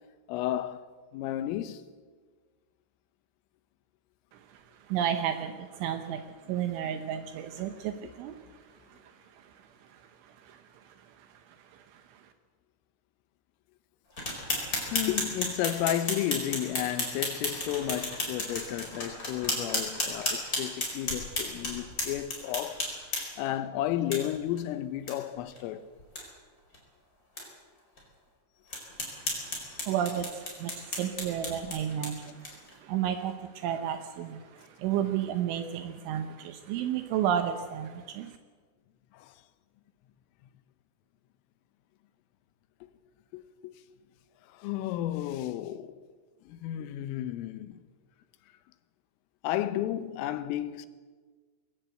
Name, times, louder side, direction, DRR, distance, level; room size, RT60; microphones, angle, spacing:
voice 1, 0.3-0.9 1.1-1.8 6.5-6.6 8.0-8.1 14.9-23.1 23.4-25.9 29.6-29.7 39.1-39.4 42.8-42.9 43.3-43.7 44.5-46.0 46.5-47.8 49.4-50.9, left 12 dB, 85° left, 3.5 m, -33 dB
voice 2, 4.3-8.6 8.9-12.2 29.1-38.4, right 9 dB, 75° right, 3.2 m, -33 dB
sound 1, 14.2-23.5 24.1-24.2 24.6-24.7 25.1-25.2 25.5-25.6 26.0-26.2 26.7-26.8 27.4-27.5 28.0-28.1 28.7-32.7, left 1 dB, 20° left, 4.6 m, -33 dB
21.5 x 16.5 x 7.9 m
omnidirectional pair, 5.8 m